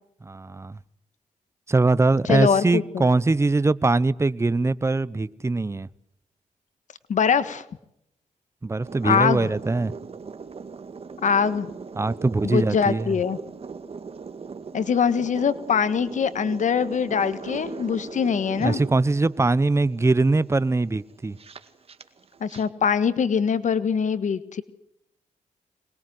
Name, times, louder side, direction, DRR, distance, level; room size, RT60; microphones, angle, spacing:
voice 1, 0.2-0.8 1.7-5.9 8.6-9.9 12.0-13.2 18.6-21.4, right 3 dB, 20° right, 0.9 m, -22 dB
voice 2, 2.3-3.1 7.1-7.6 9.0-9.5 11.2-11.7 12.4-13.4 14.7-18.8 22.4-24.6, left 6 dB, 65° left, 1.6 m, -23 dB
sound 1, 8.8-22.6, right 5 dB, 45° right, 2.0 m, -39 dB
24.5 x 21.0 x 7.9 m
cardioid pair, 95°, 14 cm